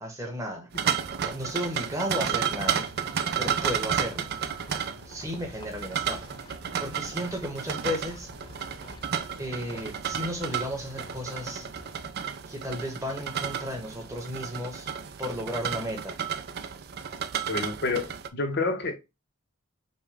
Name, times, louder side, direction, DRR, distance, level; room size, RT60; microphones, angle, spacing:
voice 1, 0.0-0.7 1.2-2.8 3.4-4.3 5.1-6.2 6.8-8.3 9.4-11.7 12.5-14.9 15.2-16.2, equal, 15° right, 1.0 m, -34 dB
sound 1, 0.7-18.3, right 8 dB, 50° right, 0.4 m, -32 dB
sound 2, 2.6-12.1, left 1 dB, 20° left, 0.5 m, -48 dB
voice 2, 17.5-19.0, left 3 dB, 50° left, 0.8 m, -29 dB
5.2 x 2.2 x 3.4 m
head